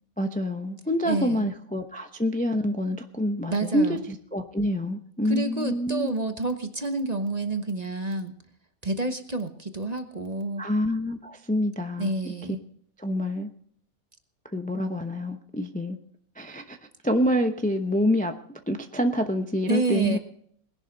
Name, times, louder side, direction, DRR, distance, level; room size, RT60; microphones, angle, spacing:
voice 1, 0.2-6.1 10.6-12.3 13.0-13.5 14.5-16.0 16.4-16.8 17.0-18.3 18.7-20.2, equal, 10° left, 5 dB, 0.6 m, -27 dB
voice 2, 1.0-1.5 3.5-4.0 5.2-8.3 8.8-10.6 12.0-12.6 19.7-20.2, right 2 dB, 30° right, 7 dB, 1.0 m, -29 dB
20.0 x 11.0 x 4.0 m, 0.64 s
omnidirectional pair, 1.5 m